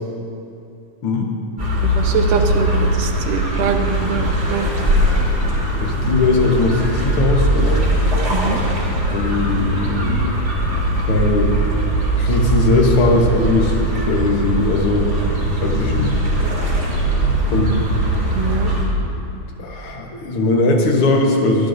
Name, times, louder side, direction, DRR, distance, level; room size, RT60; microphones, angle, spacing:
sound 1, 1.6-18.8, right 1 dB, 25° right, 2.2 m, -20 dB
voice 1, 1.8-4.7 8.3-8.6 18.3-18.7, right 5 dB, 85° right, 3 dB, 2.5 m, -23 dB
voice 2, 5.8-7.8 9.1-10.3 11.1-11.5 12.2-15.1 15.6-16.1 17.4-17.8 19.6-21.7, left 3 dB, 55° left, 1 dB, 1.7 m, -19 dB
25.0 x 11.0 x 2.6 m, 2.6 s
omnidirectional pair, 3.7 m